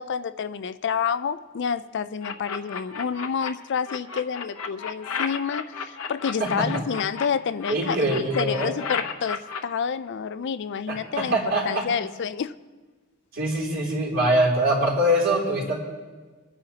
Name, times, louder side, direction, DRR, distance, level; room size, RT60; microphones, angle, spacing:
voice 1, 0.0-12.5, left 6 dB, 55° left, 13 dB, 0.4 m, -29 dB
sound 1, 2.2-3.5 3.8-7.2 7.6-9.6, left 6 dB, 75° left, 0.9 m, -32 dB
voice 2, 6.4-6.8 7.7-8.7 10.9-11.8 13.3-15.8, right 1 dB, 60° right, -4 dB, 3.6 m, -23 dB
27.0 x 9.8 x 2.9 m, 1.4 s
head